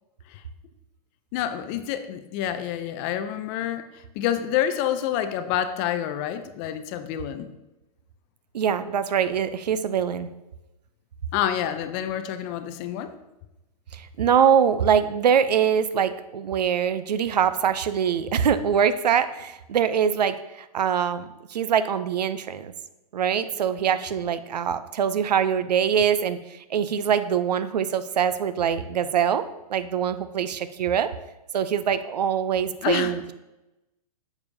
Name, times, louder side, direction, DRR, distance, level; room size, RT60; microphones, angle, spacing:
voice 1, 1.3-3.9 4.2-7.5 11.3-13.1 32.8-33.2, left 10 dB, 25° left, 10 dB, 0.4 m, -28 dB
voice 2, 8.5-10.3 13.9-20.4 20.7-22.7 23.1-26.4 26.7-29.4 29.7-31.1 31.5-33.3, right 8 dB, 85° right, 13 dB, 0.6 m, -23 dB
6.8 x 6.7 x 2.7 m, 0.98 s
hypercardioid pair, 140°, 20 cm